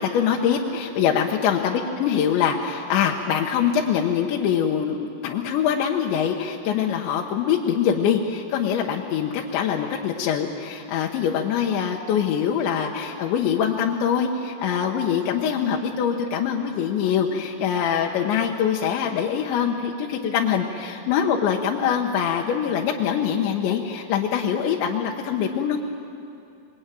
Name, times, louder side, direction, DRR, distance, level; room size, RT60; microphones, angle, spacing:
voice 1, 0.0-25.8, left 8 dB, 75° left, 1 dB, 3.3 m, -23 dB
28.0 x 22.0 x 9.2 m, 2.6 s
omnidirectional pair, 5.6 m